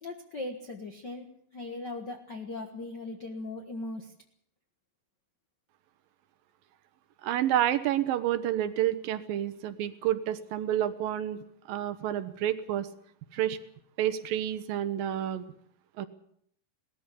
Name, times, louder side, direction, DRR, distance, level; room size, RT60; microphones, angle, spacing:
voice 1, 0.0-4.1, left 2 dB, 50° left, 4 dB, 1.2 m, -39 dB
voice 2, 7.2-11.4 11.7-12.9 13.3-13.6 14.0-15.4 16.0-16.1, right 11 dB, 75° right, 11 dB, 2.6 m, -29 dB
19.0 x 14.0 x 9.8 m, 0.68 s
omnidirectional pair, 4.3 m